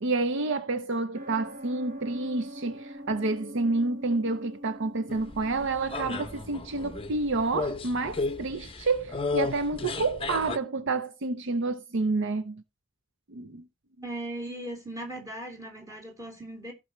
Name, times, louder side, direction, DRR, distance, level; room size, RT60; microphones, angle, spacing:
voice 1, 0.0-12.6 13.3-13.6, right 3 dB, 60° right, 0.6 m, -29 dB
sound 1, 1.1-8.6, equal, 40° right, 1.0 m, -45 dB
sound 2, 5.1-10.6, left 3 dB, 25° left, 0.7 m, -34 dB
voice 2, 14.0-16.7, right 1 dB, 15° right, 3.2 m, -38 dB
15.0 x 6.1 x 3.1 m
head